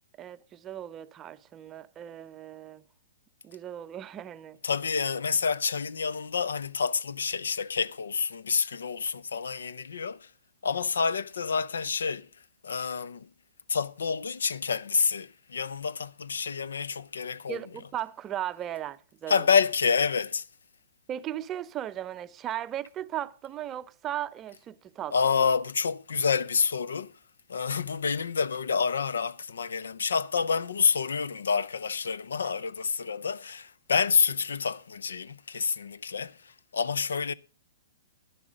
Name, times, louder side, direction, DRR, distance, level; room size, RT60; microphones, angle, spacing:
voice 1, 0.2-2.8 3.4-4.6 17.5-19.6 21.1-25.5, right 11 dB, 20° right, 0.5 m, -37 dB
voice 2, 4.6-10.3 10.6-12.3 12.6-13.3 13.7-17.6 19.3-20.4 25.1-27.1 27.5-37.3, left 5 dB, 85° left, 0.5 m, -28 dB
11.0 x 10.5 x 5.0 m
hypercardioid pair, 140°, 0 cm